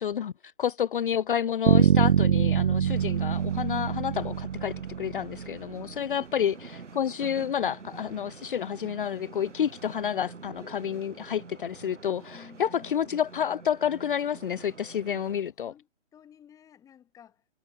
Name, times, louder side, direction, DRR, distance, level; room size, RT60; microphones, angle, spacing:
voice 1, 0.0-15.7, left 9 dB, 45° left, 1.0 m, -30 dB
Bass guitar, 1.7-5.6, right 8 dB, 45° right, 0.7 m, -24 dB
sound 1, 2.8-15.4, right 5 dB, 85° right, 5.7 m, -47 dB
voice 2, 5.7-6.3 12.3-13.0 15.6-17.5, left 9 dB, 10° left, 3.7 m, -53 dB
hypercardioid pair, 160°, 35 cm